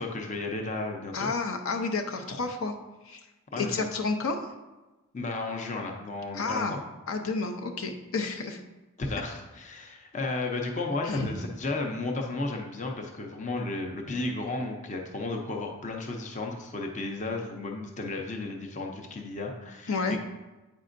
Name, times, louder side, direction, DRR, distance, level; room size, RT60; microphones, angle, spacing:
voice 1, 0.0-1.3 3.5-3.9 5.1-6.8 9.0-20.2, left 2 dB, 35° left, 2 dB, 0.6 m, -33 dB
voice 2, 1.1-2.8 3.0-3.2 3.6-4.4 6.3-6.8 7.1-8.6 11.0-11.3 19.9-20.2, left 4 dB, 70° left, 4 dB, 0.6 m, -30 dB
8.5 x 5.3 x 2.5 m, 1.1 s
head